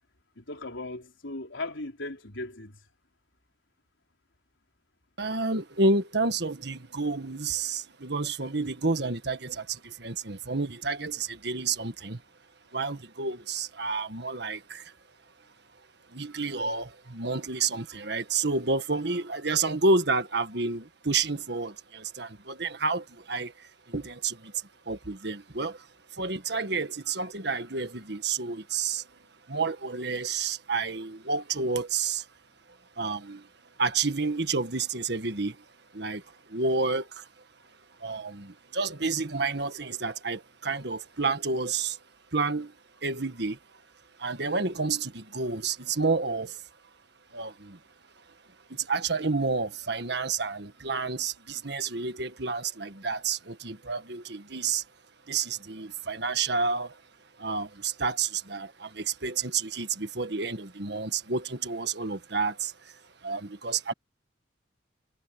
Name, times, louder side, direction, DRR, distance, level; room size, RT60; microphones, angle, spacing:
voice 1, 0.4-2.8, left 2 dB, 90° left, 3.9 m, -37 dB
voice 2, 5.2-12.2 12.7-14.9 16.1-25.9 26.1-29.1 29.5-32.2 33.0-33.5 33.8-35.6 35.9-36.2 36.5-37.3 38.0-42.0 42.3-42.7 43.0-43.6 44.2-46.6 47.3-47.8 48.7-54.8 55.3-57.0 57.4-63.0 63.2-63.9, right 4 dB, 60° right, 1.6 m, -30 dB
head